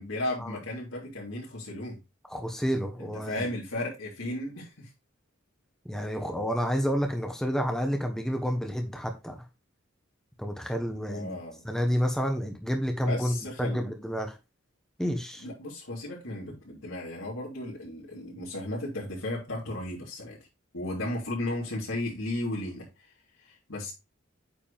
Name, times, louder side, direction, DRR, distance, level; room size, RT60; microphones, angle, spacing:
voice 1, 0.0-2.0 3.0-4.9 11.1-11.6 13.1-13.8 15.4-20.4 20.7-22.9 23.4-23.9, left 1 dB, 80° left, -8 dB, 3.7 m, -35 dB
voice 2, 2.3-3.5 5.8-9.4 10.4-11.4 11.6-14.4 15.0-15.4, equal, ahead, 3 dB, 1.1 m, -29 dB
8.9 x 5.1 x 3.5 m, 0.25 s
head